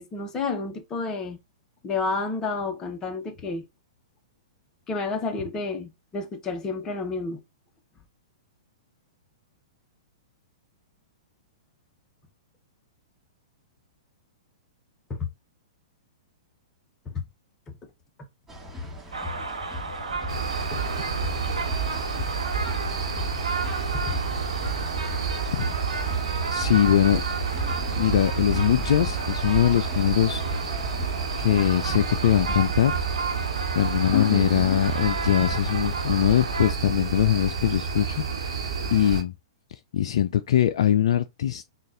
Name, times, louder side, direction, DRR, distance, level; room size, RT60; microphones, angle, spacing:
voice 1, 0.0-1.4 1.8-3.7 4.9-7.4 15.1-15.3 17.1-17.2 20.7-20.8 23.9-24.1 34.1-34.9, left 4 dB, 20° left, 0.9 m, -30 dB
sound 1, 18.5-32.9, equal, 10° right, 1.3 m, -36 dB
sound 2, 19.1-36.7, right 3 dB, 90° right, 1.1 m, -34 dB
sound 3, 20.3-39.2, right 5 dB, 70° right, 1.2 m, -30 dB
voice 2, 26.5-27.2 28.0-31.0 31.4-33.0 33.8-39.3 39.7-41.7, left 10 dB, 65° left, 0.3 m, -22 dB
3.9 x 2.4 x 3.7 m
hypercardioid pair, 115°, 3 cm